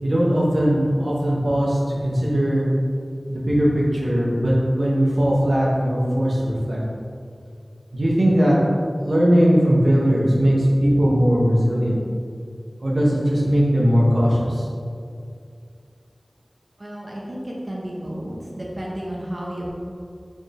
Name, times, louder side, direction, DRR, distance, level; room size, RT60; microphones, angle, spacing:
voice 1, 0.0-2.7 3.3-6.8 7.9-8.6 9.0-12.0 12.8-14.7, equal, 85° right, -5 dB, 0.8 m, -19 dB
voice 2, 16.8-19.7, right 1 dB, 40° right, -4 dB, 0.7 m, -32 dB
4.4 x 3.5 x 3.4 m, 2.3 s
wide cardioid pair, 55°, 0 cm